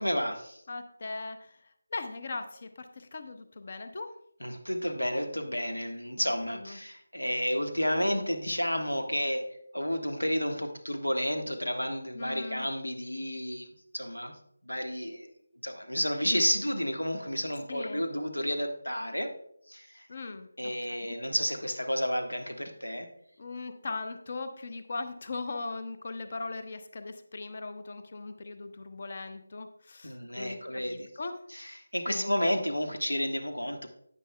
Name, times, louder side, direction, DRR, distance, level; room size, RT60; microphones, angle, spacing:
voice 1, 0.0-0.6 4.4-9.5 9.7-14.3 14.6-15.3 15.6-19.3 19.7-20.1 20.6-23.1 30.0-31.1 31.5-33.9, equal, 80° left, 5 dB, 1.3 m, -31 dB
voice 2, 0.7-4.1 6.1-6.3 6.5-6.8 12.1-12.7 17.7-18.0 20.1-21.2 23.4-31.4 32.1-32.3, left 3 dB, 40° left, 8 dB, 0.7 m, -39 dB
9.8 x 9.5 x 2.2 m, 0.69 s
figure-of-eight pair, 160°, 0 cm